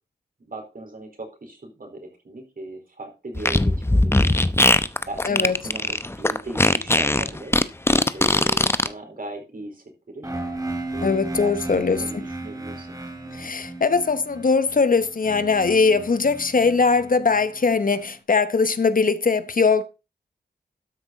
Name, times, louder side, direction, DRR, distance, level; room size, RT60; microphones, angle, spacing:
voice 1, 0.4-4.4 5.0-7.6 8.1-10.3 10.9-13.0 13.2-13.5, right 2 dB, 55° right, 4.1 m, -38 dB
Fart, 3.4-8.9, left 1 dB, 15° left, 0.7 m, -19 dB
sound 1, 10.2-18.0, right 2 dB, 20° right, 2.7 m, -35 dB
voice 2, 11.0-12.0 13.3-19.8, left 4 dB, 55° left, 1.0 m, -20 dB
12.5 x 6.1 x 4.0 m
cardioid pair, 45°, 17 cm